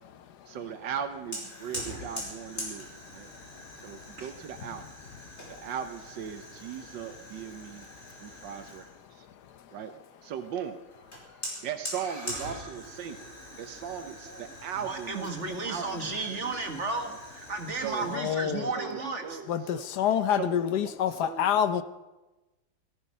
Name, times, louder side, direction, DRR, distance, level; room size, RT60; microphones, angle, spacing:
voice 1, 0.5-3.3 3.8-4.8 5.5-7.9 8.2-8.9 9.1-9.2 9.7-9.9 10.2-10.8 11.6-15.3 15.6-16.5 17.0-17.2 17.7-18.1 18.7-19.9 20.3-21.5, right 8 dB, 85° right, 1.6 m, -38 dB
Fire, 1.3-9.0 11.1-18.2, equal, 35° left, 5.3 m, -43 dB
voice 2, 12.0-12.7 14.3-14.4 14.8-19.4 20.5-20.6 20.9-21.5, right 3 dB, 40° right, 1.8 m, -35 dB
voice 3, 18.1-18.7 19.5-21.8, left 9 dB, 70° left, 1.2 m, -27 dB
17.5 x 14.0 x 5.5 m
omnidirectional pair, 1.9 m